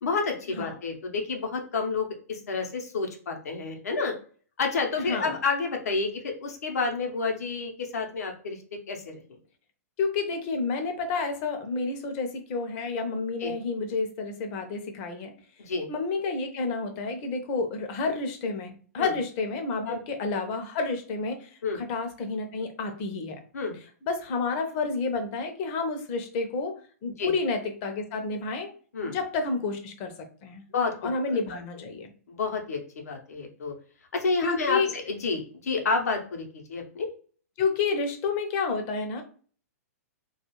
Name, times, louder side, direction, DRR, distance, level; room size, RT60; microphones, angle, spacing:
voice 1, 0.0-4.1 4.6-8.6 8.9-9.2 13.4-13.5 15.6-15.9 19.0-19.1 19.9-20.0 21.6-21.8 23.5-23.8 27.2-27.3 28.9-29.1 30.7-30.9 31.5-31.6 32.3-32.8 33.0-33.7 34.1-37.1, left 4 dB, 75° left, 3 dB, 0.8 m, -29 dB
voice 2, 5.0-5.4 10.0-15.3 15.9-23.4 24.0-26.8 27.0-28.7 29.0-30.1 30.4-30.6 31.0-32.1 34.4-34.9 37.6-39.2, left 4 dB, 40° left, 5 dB, 0.6 m, -30 dB
2.4 x 2.3 x 2.9 m, 0.42 s
hypercardioid pair, 130°, 9 cm